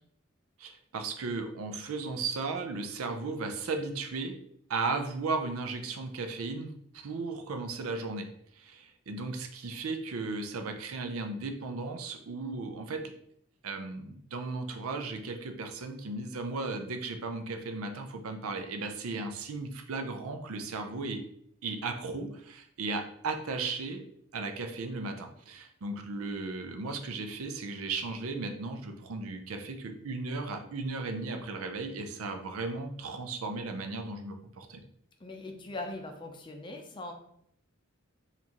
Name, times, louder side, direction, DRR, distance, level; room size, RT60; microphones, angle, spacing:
voice 1, 0.6-4.4 4.7-8.3 8.6-13.0 13.6-21.2 21.6-24.0 24.3-34.8, right 3 dB, 90° right, 6 dB, 0.5 m, -36 dB
voice 2, 35.2-37.1, left 2 dB, 25° left, 4 dB, 0.5 m, -40 dB
4.4 x 2.5 x 2.9 m, 0.70 s
head